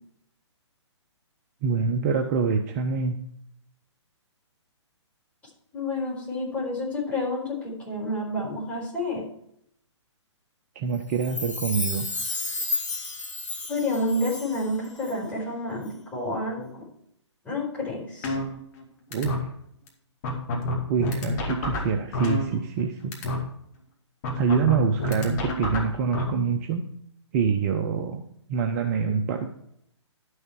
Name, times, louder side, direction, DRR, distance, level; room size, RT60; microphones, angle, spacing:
voice 1, 1.6-3.2 10.7-12.1 19.1-19.3 20.9-23.2 24.4-26.8 27.3-28.2 28.5-29.5, right 5 dB, 35° right, 4 dB, 0.8 m, -25 dB
voice 2, 5.7-9.2 13.7-16.8 17.4-18.4, left 1 dB, 10° left, -6 dB, 4.5 m, -29 dB
Chime, 11.1-14.7 15.0-15.1, left 3 dB, 80° left, 2.3 m, -32 dB
sound 1, 18.2-18.8 19.1-19.4 19.9-20.0 20.2-22.8 23.1-23.4 24.2-26.2, left 1 dB, 35° left, 2.3 m, -28 dB
12.0 x 6.5 x 4.7 m, 0.72 s
hypercardioid pair, 135°, 15 cm